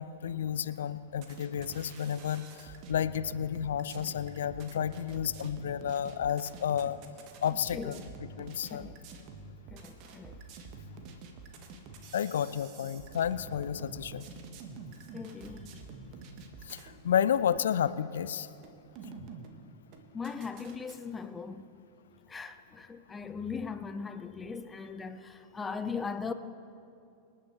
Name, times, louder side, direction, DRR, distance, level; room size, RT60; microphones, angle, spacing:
voice 1, 0.0-7.0 7.4-8.0 8.4-8.9 12.1-14.3 16.6-18.5, left 9 dB, 65° left, 0.3 m, -31 dB
sound 1, 1.1-17.0 17.3-17.5 18.1-18.3 18.6-19.6 19.9-21.0, right 4 dB, 40° right, 1.3 m, -47 dB
voice 2, 7.7-8.0 8.7-9.0 9.7-10.4 15.1-15.7 20.1-21.6 22.3-26.3, left 5 dB, 15° left, 0.6 m, -39 dB
26.5 x 9.0 x 3.3 m
figure-of-eight pair, 90°, 0 cm